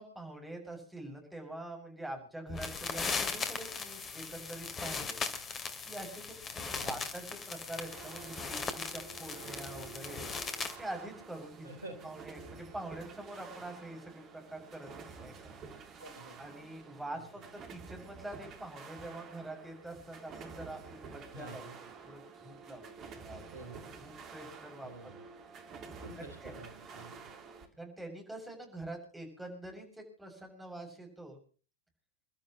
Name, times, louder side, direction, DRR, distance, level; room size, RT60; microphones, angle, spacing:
voice 1, 0.0-5.2 5.8-10.3 10.8-11.7 12.0-15.5 16.4-23.4 24.0-24.9 26.4-26.5 26.9-27.0 27.8-31.4, right 1 dB, 5° right, 2 dB, 7.1 m, -45 dB
sound 1, 2.5-10.8, left 5 dB, 25° left, 2.5 m, -38 dB
sound 2, 7.9-27.7, right 5 dB, 30° right, 3.1 m, -50 dB
voice 2, 11.6-12.0 13.5-13.6 16.0-16.4 17.1-17.5 21.3-21.8 23.5-23.9 24.8-25.2 26.0-27.4, right 2 dB, 75° right, 7 dB, 4.2 m, -49 dB
30.0 x 12.5 x 3.1 m, 0.39 s
figure-of-eight pair, 90°, 0 cm